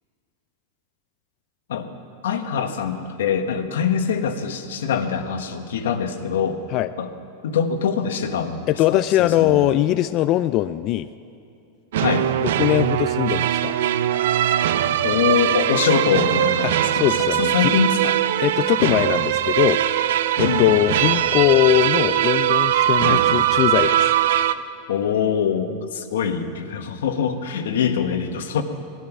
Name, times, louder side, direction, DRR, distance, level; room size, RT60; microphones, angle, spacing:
voice 1, 2.2-6.6 7.0-7.1 7.4-8.6 9.2-9.6 12.0-12.3 15.0-18.1 18.8-19.0 20.4-20.7 23.0-23.2 24.9-28.6, left 7 dB, 90° left, 7 dB, 1.2 m, -23 dB
voice 2, 8.7-11.1 12.4-13.8 16.6-17.5 18.4-19.8 20.4-24.1, left 14 dB, 40° left, 12 dB, 0.3 m, -21 dB
sound 1, 11.9-24.5, right 11 dB, 75° right, 0.5 m, -21 dB
18.5 x 11.5 x 6.0 m, 2.5 s
supercardioid pair, 150°, 0 cm